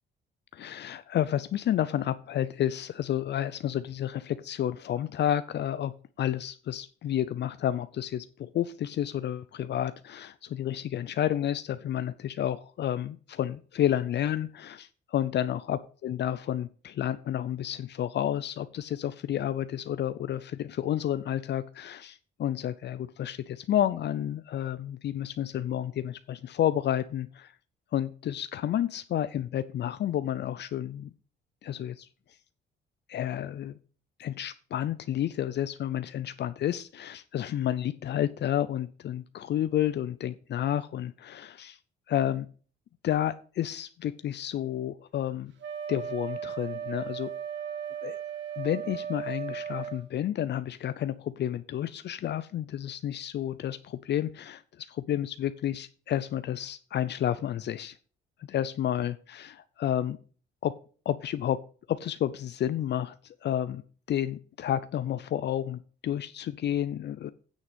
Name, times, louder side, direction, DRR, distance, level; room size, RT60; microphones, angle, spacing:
voice 1, 0.5-5.9 6.2-27.5 27.9-31.1 31.6-32.1 33.1-33.8 34.2-41.8 42.1-42.5 43.0-45.5 45.9-47.3 48.0-48.2 48.6-57.9 58.4-60.2 60.6-60.7 61.1-61.6 61.9-63.1 63.4-63.8 64.1-67.3, left 11 dB, 60° left, 14 dB, 0.6 m, -30 dB
Wind instrument woodwind instrument, 45.6-50.0, right 8 dB, 70° right, 1.8 m, -36 dB
9.5 x 6.4 x 5.2 m, 0.40 s
cardioid pair, 90°, 20 cm